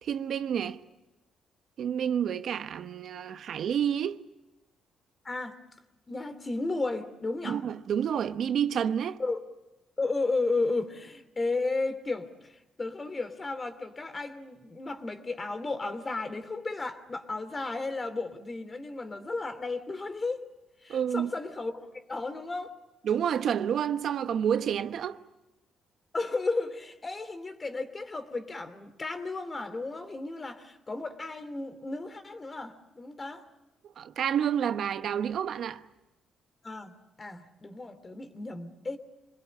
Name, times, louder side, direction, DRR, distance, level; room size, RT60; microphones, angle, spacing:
voice 1, 0.0-0.8 1.8-4.2 7.4-9.2 20.9-21.3 23.1-25.2 34.0-35.8, right 8 dB, 65° right, 1.0 m, -29 dB
voice 2, 5.2-5.6 6.1-7.6 9.2-9.4 10.0-20.4 20.8-22.7 26.1-33.4 36.6-39.0, left 3 dB, 30° left, 2.8 m, -34 dB
26.0 x 21.0 x 8.8 m
cardioid pair, 90°, 0 cm